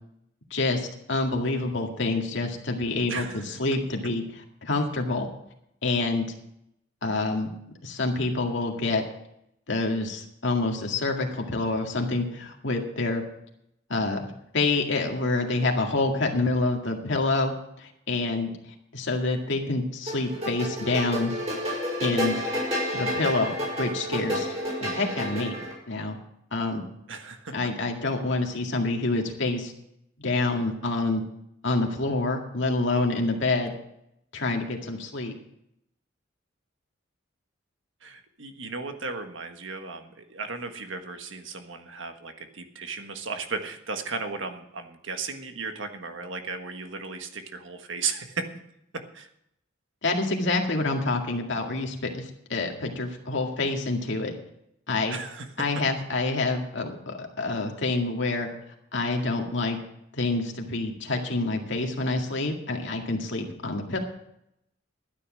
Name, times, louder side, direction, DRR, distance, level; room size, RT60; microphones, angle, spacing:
voice 1, 0.5-4.2 4.6-5.3 5.8-6.3 7.0-7.5 7.8-9.0 9.7-13.2 13.9-14.3 14.5-18.5 18.9-21.3 22.0-22.3 22.9-24.5 24.8-25.6 25.9-26.2 26.5-26.8 27.5-29.7 30.2-31.2 31.6-33.7 34.3-35.3 50.0-54.3 54.9-55.2 55.6-58.5 58.9-59.8 60.1-64.0, left 2 dB, 65° left, 2 dB, 2.0 m, -27 dB
voice 2, 3.1-3.6 27.1-27.5 38.0-48.5 48.9-49.3 55.1-55.5, right 4 dB, 70° right, 7 dB, 1.5 m, -35 dB
sound 1, 20.1-25.7, equal, 35° right, 6.0 m, -30 dB
12.5 x 9.9 x 6.3 m, 0.78 s
head